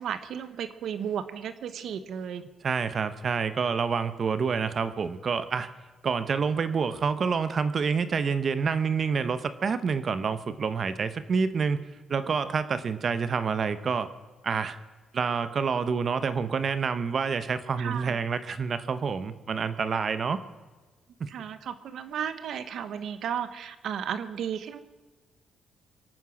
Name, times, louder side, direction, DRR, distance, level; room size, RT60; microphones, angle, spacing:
voice 1, 0.0-2.4 17.8-18.2 21.3-24.8, right 8 dB, 70° right, 12 dB, 1.2 m, -34 dB
voice 2, 2.6-5.7 6.0-11.8 12.1-14.1 14.4-14.8 15.1-20.4 21.2-21.3, right 5 dB, 45° right, 12 dB, 1.0 m, -28 dB
24.0 x 9.2 x 6.3 m, 1.3 s
cardioid pair, 90°, 0 cm